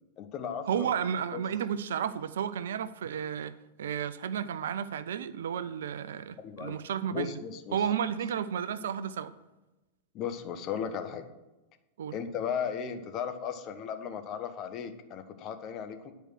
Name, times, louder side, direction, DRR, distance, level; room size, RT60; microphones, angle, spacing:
voice 1, 0.2-0.9 1.3-1.4 6.4-6.8 7.1-7.8 10.1-11.2 12.1-16.1, left 7 dB, 35° left, 7 dB, 0.8 m, -36 dB
voice 2, 0.7-7.4 7.7-9.3 12.0-12.2, right 8 dB, 60° right, 15 dB, 0.4 m, -32 dB
9.8 x 4.6 x 6.2 m, 1.1 s
figure-of-eight pair, 90°, 0 cm